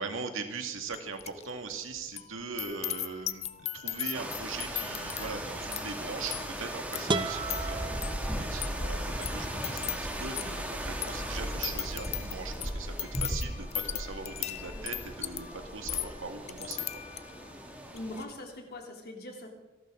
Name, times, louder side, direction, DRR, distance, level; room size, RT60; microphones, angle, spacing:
voice 1, 0.0-15.5 15.7-16.9, right 4 dB, 80° right, 5 dB, 2.0 m, -40 dB
sound 1, 0.9-1.5 1.7-17.5 17.9-18.2, left 12 dB, 35° left, 0.5 m, -39 dB
sound 2, 4.1-18.3, equal, 10° right, 2.1 m, -37 dB
sound 3, 7.1-9.0, right 3 dB, 25° right, 0.7 m, -34 dB
voice 2, 17.9-19.5, left 1 dB, 55° left, 1 dB, 3.1 m, -42 dB
28.0 x 12.0 x 3.8 m, 1.1 s
head